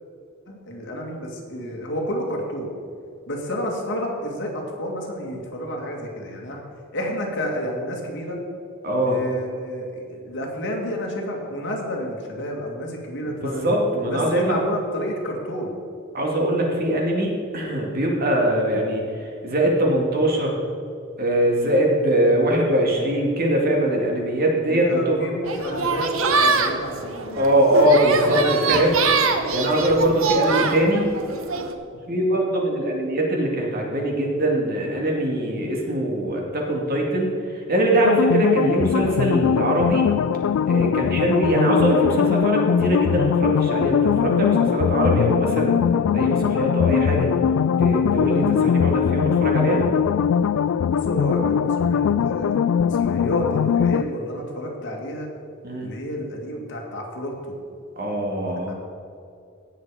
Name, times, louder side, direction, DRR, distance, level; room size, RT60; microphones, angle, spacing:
voice 1, 0.5-2.7 3.3-6.6 6.9-8.4 9.0-13.7 14.1-15.8 24.7-27.5 28.2-30.0 50.9-55.3 55.8-57.6 58.7-58.8, equal, 60° left, 0 dB, 2.2 m, -30 dB
voice 2, 8.8-9.2 13.2-14.6 16.1-20.6 21.2-25.3 27.4-28.9 29.5-31.1 32.1-37.4 37.7-40.0 40.7-47.3 47.8-49.8 55.6-55.9 58.0-58.7, right 1 dB, 50° right, -1 dB, 2.3 m, -22 dB
sound 1, 25.4-31.7, right 4 dB, 75° right, 1.0 m, -24 dB
sound 2, 38.0-54.0, left 7 dB, 85° left, 0.3 m, -21 dB
17.5 x 6.5 x 4.9 m, 2.5 s
head